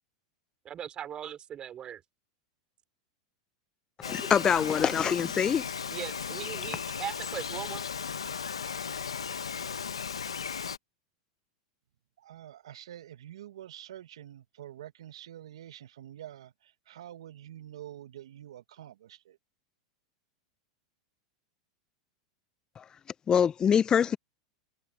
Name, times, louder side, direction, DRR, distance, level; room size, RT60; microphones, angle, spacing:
voice 1, 0.6-2.0 5.9-7.8, right 10 dB, 35° right, 4.8 m, -39 dB
Bird vocalization bird call bird song, 4.0-10.8, left 6 dB, 90° left, 1.2 m, -36 dB
voice 2, 4.0-5.6 22.8-22.9 23.3-24.2, left 8 dB, 25° left, 0.7 m, -24 dB
voice 3, 12.2-16.5 16.9-19.4, right 12 dB, 75° right, 1.4 m, -47 dB
hypercardioid pair, 95°, 3 cm